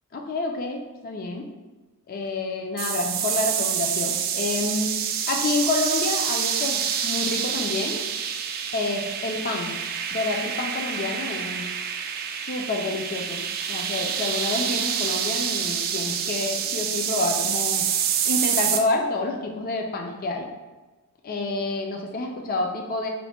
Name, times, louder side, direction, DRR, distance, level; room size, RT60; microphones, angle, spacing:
voice 1, 0.1-1.5 2.1-4.9 5.3-8.0 8.7-9.7 10.1-11.8 12.2-17.8 18.2-20.5 21.2-23.1, left 2 dB, 40° left, 2 dB, 0.4 m, -28 dB
sound 1, 2.8-18.8, right 8 dB, 40° right, 0.3 m, -27 dB
4.3 x 2.1 x 4.1 m, 1.2 s
head